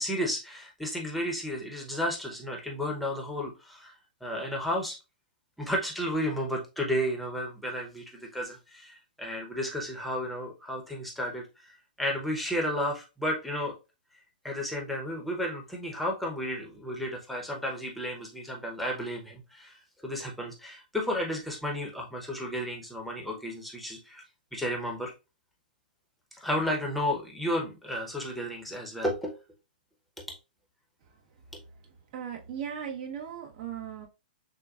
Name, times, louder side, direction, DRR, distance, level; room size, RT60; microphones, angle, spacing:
voice 1, 0.0-3.9 4.2-5.0 5.6-11.5 12.0-13.7 14.4-24.2 24.5-25.1 26.3-29.4 30.2-30.3, equal, ahead, 0.9 m, -32 dB
voice 2, 31.8-34.1, right 8 dB, 45° right, 1.1 m, -38 dB
6.2 x 2.2 x 2.5 m
hypercardioid pair, 145°, 5 cm